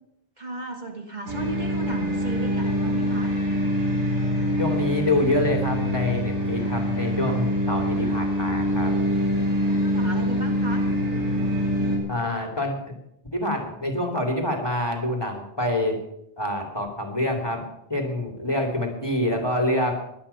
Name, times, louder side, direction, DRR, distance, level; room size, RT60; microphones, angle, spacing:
voice 1, 0.4-3.3 9.6-10.8, right 2 dB, 40° right, 2 dB, 1.8 m, -34 dB
sound 1, 1.3-12.0, equal, 80° right, 4.3 m, -25 dB
voice 2, 4.6-8.9 12.1-12.9 13.3-16.0 16.4-17.6 17.9-19.9, left 1 dB, 20° left, 3 dB, 2.7 m, -26 dB
17.0 x 11.0 x 5.6 m, 0.78 s
omnidirectional pair, 1.2 m